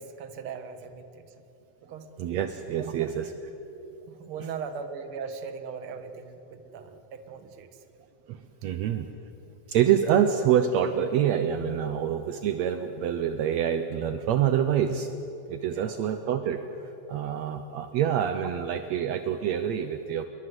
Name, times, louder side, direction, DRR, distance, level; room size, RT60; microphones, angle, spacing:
voice 1, 0.0-1.4 1.8-2.1 2.8-3.1 4.1-7.8 15.6-16.0, right 6 dB, 50° right, 8 dB, 2.2 m, -39 dB
voice 2, 2.2-3.3 3.7-4.1 8.3-9.1 9.7-15.1 15.5-20.3, right 9 dB, 70° right, 8 dB, 2.1 m, -26 dB
29.0 x 22.5 x 8.0 m, 2.9 s
omnidirectional pair, 3.3 m